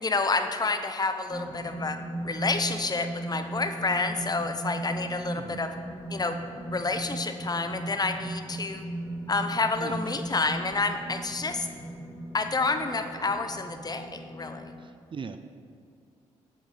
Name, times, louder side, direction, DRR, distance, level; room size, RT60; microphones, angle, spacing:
voice 1, 0.0-5.7 6.1-6.4 6.7-8.9 9.3-11.7 12.3-14.7, left 3 dB, 30° left, 8 dB, 0.8 m, -29 dB
sound 1, 1.3-14.7, right 1 dB, 5° right, 1.8 m, -37 dB
voice 2, 14.8-15.4, right 5 dB, 40° right, 10 dB, 0.5 m, -40 dB
8.0 x 7.4 x 5.0 m, 2.2 s
supercardioid pair, 55°, 13 cm